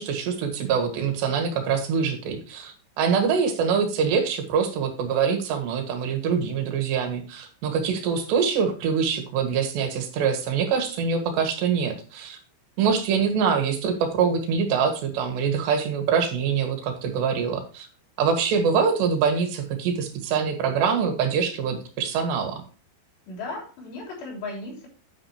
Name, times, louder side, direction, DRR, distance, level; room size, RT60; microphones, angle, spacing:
voice 1, 0.0-12.4 12.8-17.9 18.2-22.6, right 6 dB, 75° right, 6 dB, 3.7 m, -24 dB
voice 2, 23.3-24.9, left 3 dB, 70° left, -1 dB, 5.4 m, -35 dB
9.4 x 9.0 x 2.8 m, 0.38 s
omnidirectional pair, 5.2 m